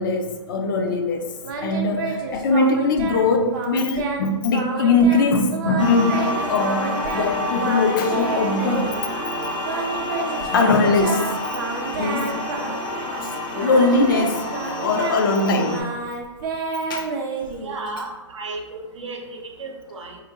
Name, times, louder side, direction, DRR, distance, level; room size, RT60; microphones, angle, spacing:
voice 1, 0.0-1.3 1.6-9.0 10.5-11.6 12.0-12.4 12.7-12.9 13.2-16.2 16.9-17.1, left 3 dB, 45° left, 4 dB, 0.4 m, -21 dB
Singing, 1.4-3.3 3.5-4.2 4.5-7.3 7.6-9.0 9.6-13.2 13.5-18.0, right 4 dB, 45° right, 0.5 m, -30 dB
sound 1, 5.8-15.8, left 1 dB, 90° left, 1.0 m, -28 dB
voice 2, 17.6-20.2, right 3 dB, 80° right, 2 dB, 0.7 m, -34 dB
3.0 x 2.4 x 2.8 m, 1.2 s
hypercardioid pair, 150°, 16 cm